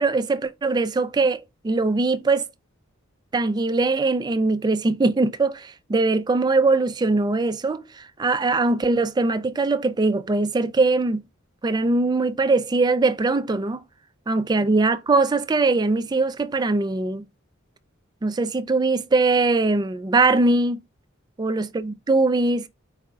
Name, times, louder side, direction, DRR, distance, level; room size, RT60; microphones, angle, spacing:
voice 1, 0.0-2.5 3.3-11.2 11.6-13.8 14.3-17.3 18.2-20.8 21.4-22.7, right 3 dB, 20° right, 0.3 m, -21 dB
4.8 x 2.4 x 4.1 m
head